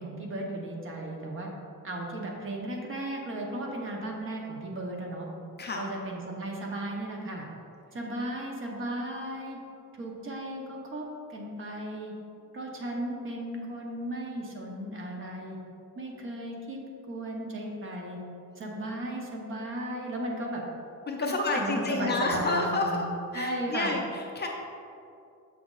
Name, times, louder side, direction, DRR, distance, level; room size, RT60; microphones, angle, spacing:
voice 1, 0.0-1.5 1.8-5.3 5.8-7.5 7.9-9.6 10.0-12.1 12.5-15.6 16.0-16.8 17.1-18.2 18.6-20.6 21.2-23.0 23.3-23.9, right 1 dB, 35° right, 0 dB, 0.9 m, -35 dB
voice 2, 21.1-23.1 23.3-24.5, left 3 dB, 30° left, 0 dB, 0.5 m, -30 dB
7.3 x 5.9 x 2.4 m, 2.6 s
cardioid pair, 150°, 34 cm